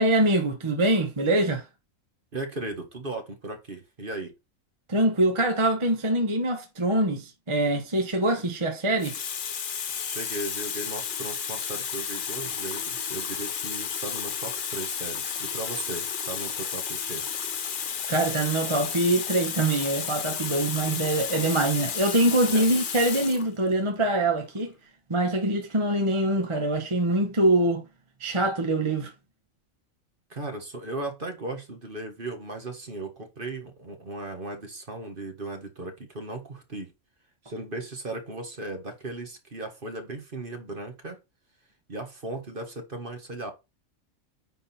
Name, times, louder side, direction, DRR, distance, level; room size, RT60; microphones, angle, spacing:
voice 1, 0.0-1.6 4.9-9.2 18.1-24.7 25.1-27.8 28.2-29.1, right 1 dB, 25° right, 1.1 m, -24 dB
voice 2, 2.3-4.3 10.0-17.3 22.5-22.7 30.3-36.9 37.4-41.2 41.9-43.5, right 2 dB, 40° right, 1.6 m, -37 dB
Water tap faucet, 8.2-8.4 9.0-23.5 24.4-24.6, left 7 dB, 45° left, 0.7 m, -32 dB
9.5 x 3.8 x 4.3 m
omnidirectional pair, 1.5 m